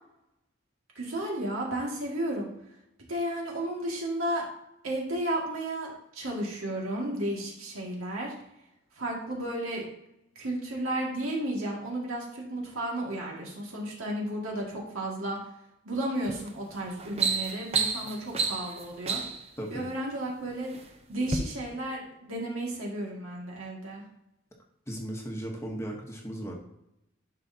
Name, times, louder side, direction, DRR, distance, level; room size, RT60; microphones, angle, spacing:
voice 1, 1.0-2.5 3.1-4.4 4.8-8.3 9.0-9.8 10.4-15.4 15.8-19.2 19.7-20.7 21.1-24.0, right 1 dB, 85° right, -2 dB, 2.1 m, -33 dB
sound 1, 16.2-16.5 16.9-19.5 20.3-20.8 21.2-21.4, right 5 dB, 30° right, 0.6 m, -30 dB
voice 2, 24.9-26.5, right 1 dB, 15° left, 0 dB, 1.0 m, -36 dB
11.0 x 4.9 x 2.8 m, 0.84 s
head